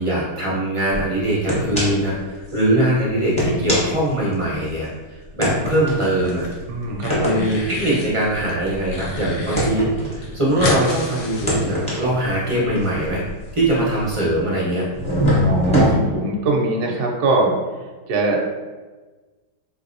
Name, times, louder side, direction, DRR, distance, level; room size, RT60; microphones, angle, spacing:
voice 1, 0.0-4.9 5.3-6.5 7.2-13.2 13.5-14.9, right 1 dB, 40° right, -7 dB, 0.4 m, -21 dB
sound 1, 0.9-1.0 1.5-2.1 2.5-2.6 3.2-4.8 5.4-10.9 11.3-14.4 14.9-15.9, equal, 5° left, 0.6 m, -24 dB
sound 2, 5.9-6.5 6.8-8.1 8.5-9.7 9.9-10.0 10.2-12.1, left 2 dB, 65° left, 1.0 m, -30 dB
voice 2, 6.7-7.5 15.4-17.6 18.1-18.5, right 2 dB, 70° right, 0 dB, 0.9 m, -21 dB
3.6 x 2.7 x 2.6 m, 1.3 s
omnidirectional pair, 1.8 m